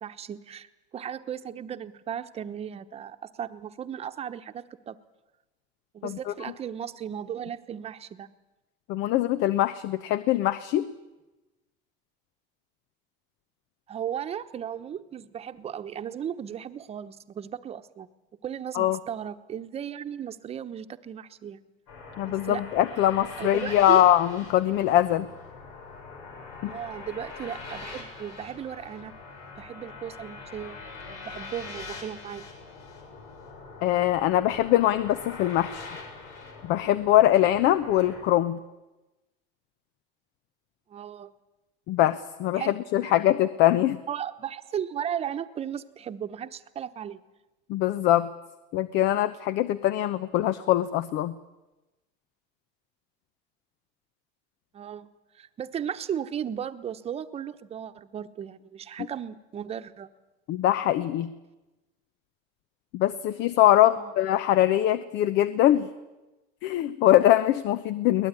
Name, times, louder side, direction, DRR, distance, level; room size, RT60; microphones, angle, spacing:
voice 1, 0.0-5.0 5.9-8.3 13.9-18.1 18.4-21.6 22.2-22.6 23.4-24.0 26.6-29.1 29.6-30.8 31.0-32.5 40.9-41.3 42.5-42.8 43.0-43.2 44.1-47.2 54.7-55.1 55.3-60.1 64.0-64.1, right 9 dB, 30° right, 9 dB, 1.1 m, -36 dB
voice 2, 8.9-10.9 18.7-19.0 22.2-25.3 26.6-26.7 33.8-35.9 36.6-38.6 41.9-44.0 47.7-48.3 48.7-51.3 60.5-61.3 62.9-65.9 66.6-68.3, left 13 dB, 60° left, 14 dB, 0.9 m, -22 dB
sound 1, 21.9-38.2, left 4 dB, 85° left, 7.1 m, -43 dB
22.5 x 19.5 x 9.8 m, 1.1 s
cardioid pair, 150°, 20 cm